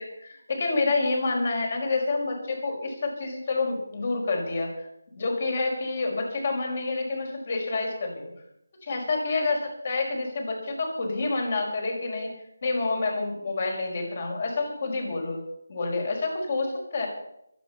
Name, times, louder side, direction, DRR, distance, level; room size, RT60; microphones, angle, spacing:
voice 1, 0.0-4.9 5.1-8.3 8.9-12.3 12.6-15.4 15.7-17.1, left 3 dB, 40° left, 2 dB, 5.2 m, -28 dB
23.5 x 9.1 x 5.7 m, 0.78 s
figure-of-eight pair, 160°, 0 cm